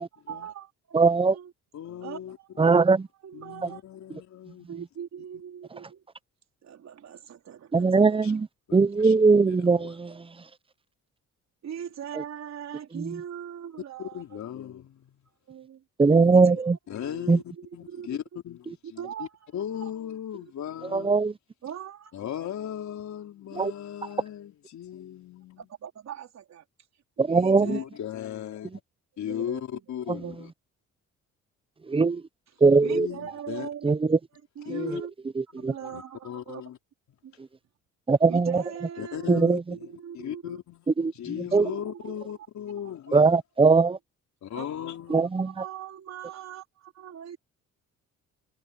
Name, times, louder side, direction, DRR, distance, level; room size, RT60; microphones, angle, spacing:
voice 1, 0.3-1.5 2.0-3.8 4.7-6.0 6.6-8.3 11.6-14.4 15.5-15.8 16.3-16.7 17.0-18.1 18.8-19.4 20.3-20.4 21.6-22.2 25.6-26.6 27.2-27.9 29.2-29.8 30.2-30.3 32.5-34.1 34.6-35.1 35.7-36.6 37.2-37.3 38.3-39.4 39.7-40.6 41.1-42.3 42.8-42.9 43.8-44.0 44.5-44.7 45.1-47.4, right 9 dB, 60° right, 4.0 m, -41 dB
voice 2, 0.9-1.4 2.6-3.0 7.7-8.5 8.7-10.1 13.0-13.1 16.0-16.7 17.3-17.4 20.9-21.3 23.6-23.7 27.2-27.8 31.9-32.2 32.6-33.1 33.8-34.2 35.6-35.7 38.1-38.6 39.3-39.6 41.0-41.1 41.5-41.6 43.1-44.0 45.1-45.5, right 4 dB, 20° right, 0.7 m, -20 dB
voice 3, 1.7-2.7 3.3-4.7 8.0-8.3 8.7-9.2 9.5-10.0 14.0-15.2 16.1-16.6 16.9-19.3 19.5-21.2 22.1-25.6 27.4-28.8 29.2-30.5 32.7-33.7 34.6-35.0 35.5-36.8 39.0-40.9 41.1-43.4 44.4-45.3, left 10 dB, 70° left, 3.9 m, -37 dB
cardioid pair, 90°, 30 cm